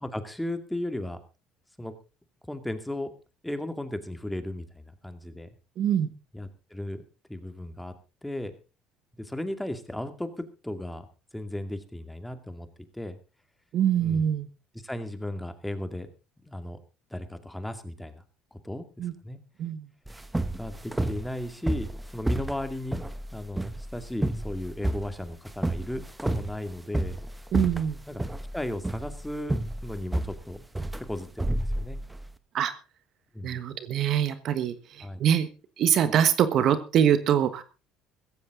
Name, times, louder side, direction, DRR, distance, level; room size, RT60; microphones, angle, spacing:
voice 1, 0.0-1.2 1.8-1.9 2.5-3.1 3.4-5.5 6.3-7.0 7.3-7.9 8.2-8.5 9.2-11.0 11.3-12.7 12.9-13.2 14.0-14.3 14.8-16.1 16.4-16.8 17.1-18.2 18.5-19.4 20.6-23.0 23.3-27.2 28.1-28.2 28.5-30.6 31.1-32.0 33.3-33.6 35.0-35.2, left 1 dB, 5° left, 9 dB, 2.3 m, -35 dB
voice 2, 5.8-6.1 13.7-14.5 19.0-19.1 19.6-19.9 27.5-28.0 32.5-32.7 33.4-35.5 35.8-37.6, right 9 dB, 60° right, 12 dB, 1.4 m, -24 dB
sound 1, 20.1-32.3, right 1 dB, 10° right, 1.3 m, -31 dB
16.0 x 14.5 x 3.8 m, 0.32 s
supercardioid pair, 85°, 0 cm